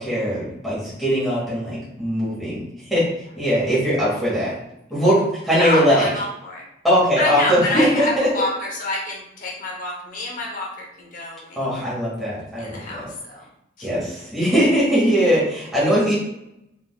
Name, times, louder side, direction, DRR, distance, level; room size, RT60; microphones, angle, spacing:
voice 1, 0.0-2.6 2.9-3.0 3.4-4.5 4.9-6.1 6.8-8.3 11.6-13.1 13.8-16.2, equal, ahead, -10 dB, 1.3 m, -20 dB
voice 2, 5.6-6.6 7.2-11.9 12.6-13.4 13.8-13.9, left 2 dB, 45° left, -2 dB, 0.8 m, -28 dB
3.6 x 2.8 x 2.3 m, 0.82 s
head